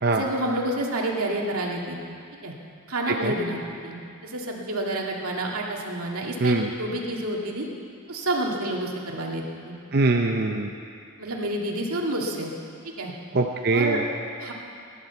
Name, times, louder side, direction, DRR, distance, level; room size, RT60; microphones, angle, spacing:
voice 1, 0.0-2.2 2.4-2.5 2.9-7.7 8.1-9.8 11.2-12.5 12.8-13.1 13.7-14.0 14.4-14.5, right 1 dB, 80° right, -1 dB, 2.2 m, -29 dB
voice 2, 6.4-6.7 9.9-10.7 13.3-14.0, right 3 dB, 45° right, 2 dB, 0.7 m, -22 dB
18.0 x 11.0 x 7.0 m, 2.4 s
head